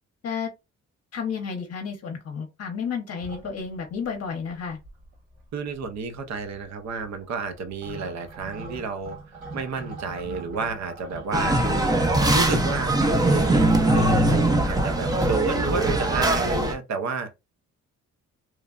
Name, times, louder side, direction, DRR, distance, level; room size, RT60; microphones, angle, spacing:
voice 1, 1.1-4.8, left 6 dB, 55° left, 0.7 m, -31 dB
sound 1, 3.2-4.1 4.5-4.6 4.7-5.4 5.7-16.2, right 3 dB, 90° right, 1.3 m, -40 dB
voice 2, 5.5-17.3, right 4 dB, 60° right, 0.7 m, -31 dB
sound 2, 11.3-16.7, right 1 dB, 15° right, 0.5 m, -21 dB
3.1 x 2.1 x 2.3 m
cardioid pair, 90°, 30 cm